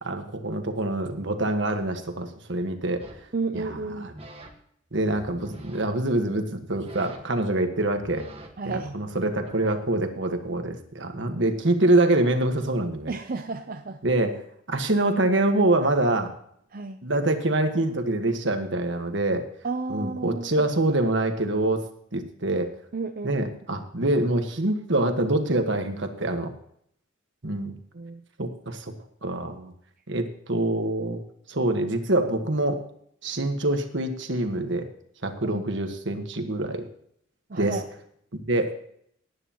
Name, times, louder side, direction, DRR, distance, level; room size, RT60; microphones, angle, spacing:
voice 1, 0.0-3.0 3.5-3.6 4.0-4.1 4.9-8.3 8.6-13.1 14.0-14.4 14.7-16.3 17.0-19.4 19.9-21.8 22.1-22.7 23.2-26.5 27.4-27.7 28.4-28.9 29.2-29.7 30.1-31.2 31.5-32.8 33.2-34.9 35.2-36.8 37.6-37.8 38.3-38.8, right 2 dB, 60° right, 6 dB, 1.5 m, -25 dB
sound 1, 3.0-3.3 3.9-4.5 4.9-5.8 6.6-7.4 7.8-9.8, right 2 dB, 30° right, 1.5 m, -46 dB
voice 2, 3.3-4.1 8.6-9.0 13.1-14.0 16.7-17.0 19.6-20.7 22.9-23.6 27.9-28.2 35.4-35.7 37.5-37.9, right 3 dB, 45° right, 6 dB, 0.6 m, -32 dB
18.5 x 9.7 x 3.0 m, 0.68 s
head